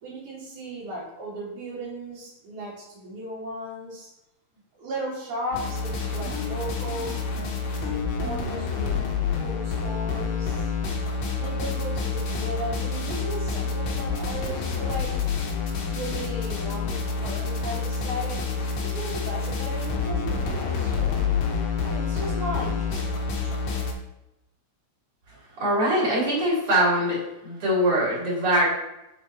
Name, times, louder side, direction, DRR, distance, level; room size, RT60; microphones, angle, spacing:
voice 1, 0.0-4.1 4.7-7.2 7.7-9.0 9.4-10.7 11.4-15.1 15.9-21.3 21.8-23.9, right 1 dB, 80° right, -11 dB, 3.1 m, -36 dB
sound 1, 5.5-23.9, left 5 dB, 75° left, 2.1 m, -28 dB
voice 2, 25.6-28.7, right 1 dB, 50° right, -6 dB, 3.3 m, -23 dB
6.5 x 4.1 x 4.3 m, 0.91 s
omnidirectional pair, 3.4 m